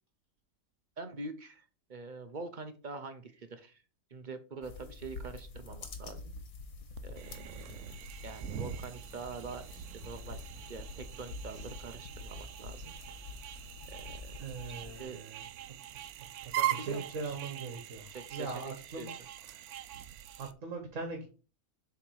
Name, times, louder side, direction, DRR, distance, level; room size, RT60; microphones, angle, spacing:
voice 1, 1.0-3.8 4.1-6.3 7.0-7.9 8.2-12.9 13.8-15.2 16.5-17.4 18.1-19.1, right 4 dB, 40° right, 8 dB, 0.8 m, -45 dB
sound 1, 4.6-15.0, left 3 dB, 70° left, 1.6 m, -47 dB
sound 2, 7.0-20.5, right 12 dB, 90° right, 1.1 m, -42 dB
voice 2, 14.4-15.4 16.4-19.1 19.5-19.6 20.4-21.2, right 4 dB, 60° right, 4 dB, 1.6 m, -41 dB
7.2 x 3.5 x 4.7 m, 0.34 s
omnidirectional pair, 1.5 m